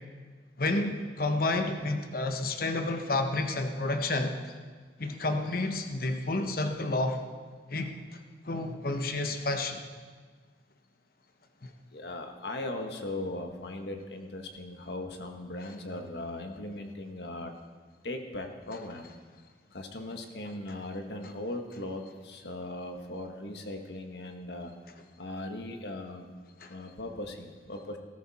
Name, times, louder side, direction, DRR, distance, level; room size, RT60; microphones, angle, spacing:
voice 1, 0.6-4.3 5.0-7.2 7.7-8.2 8.4-9.8 11.6-11.7 26.6-26.7, left 2 dB, 55° left, 5 dB, 1.1 m, -30 dB
voice 2, 11.9-17.5 18.0-19.1 19.7-24.7 25.2-26.3 26.7-28.0, left 1 dB, 70° left, 4 dB, 1.6 m, -38 dB
18.5 x 14.0 x 4.3 m, 1.5 s
head